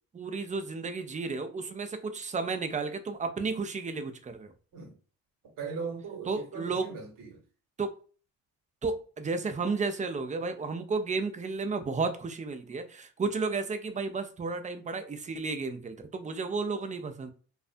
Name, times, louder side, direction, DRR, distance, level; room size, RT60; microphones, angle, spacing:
voice 1, 0.1-4.5 6.3-6.9 7.8-7.9 8.8-17.3, right 4 dB, 20° right, 0.5 m, -33 dB
voice 2, 5.6-7.4, right 5 dB, 55° right, 1.1 m, -39 dB
2.4 x 2.2 x 2.5 m
supercardioid pair, 65°, 39 cm